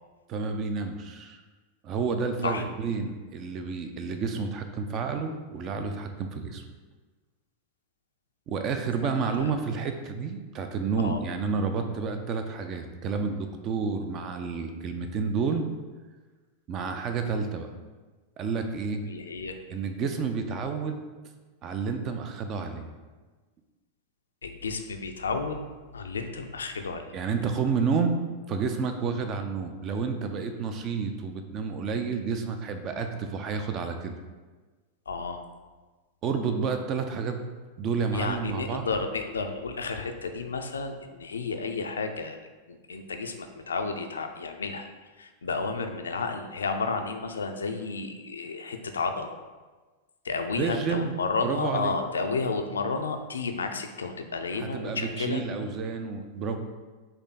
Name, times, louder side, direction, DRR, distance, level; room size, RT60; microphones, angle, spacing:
voice 1, 0.3-1.4 1.8-6.6 8.5-15.7 16.7-17.7 18.4-19.0 19.7-21.0 21.6-22.9 27.1-28.2 28.5-34.2 36.2-37.4 37.8-38.9 50.6-52.0 54.5-56.6, right 5 dB, 35° right, 7 dB, 0.4 m, -30 dB
voice 2, 19.1-19.6 24.4-25.6 25.9-27.1 35.1-35.4 38.1-42.4 42.7-44.9 45.2-49.4 50.2-55.4, left 4 dB, 70° left, 6 dB, 0.3 m, -31 dB
4.3 x 2.6 x 4.0 m, 1.3 s
figure-of-eight pair, 90°, 0 cm